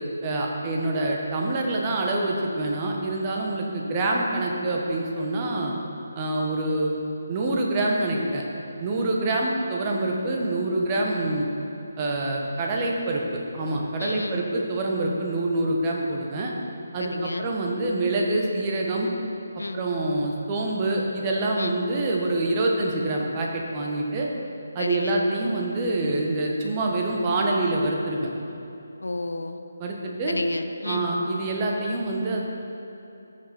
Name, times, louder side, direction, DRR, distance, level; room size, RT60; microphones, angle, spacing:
voice 1, 0.2-5.7 6.1-6.9 7.3-8.4 8.8-11.5 12.0-13.2 13.5-16.5 16.9-19.1 19.7-24.3 24.7-28.3 29.8-30.4 30.8-32.4, right 2 dB, 25° right, -1 dB, 1.2 m, -26 dB
voice 2, 14.0-14.5 17.0-17.5 19.6-19.8 21.6-21.8 24.8-25.3 29.0-29.6 30.3-31.1, left 2 dB, 65° left, 7 dB, 0.6 m, -31 dB
14.5 x 6.3 x 4.4 m, 3.0 s
figure-of-eight pair, 150°, 0 cm